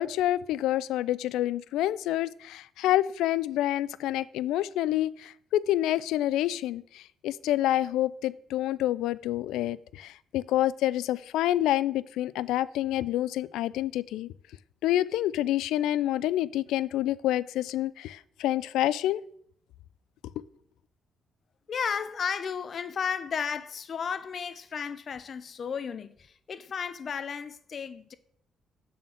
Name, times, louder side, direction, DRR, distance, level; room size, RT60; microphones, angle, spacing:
voice 1, 0.0-14.3 14.8-19.2, left 13 dB, 90° left, 0.3 m, -28 dB
voice 2, 21.7-28.1, left 6 dB, 50° left, 0.6 m, -33 dB
7.1 x 4.4 x 6.2 m
cardioid pair, 90°, 0 cm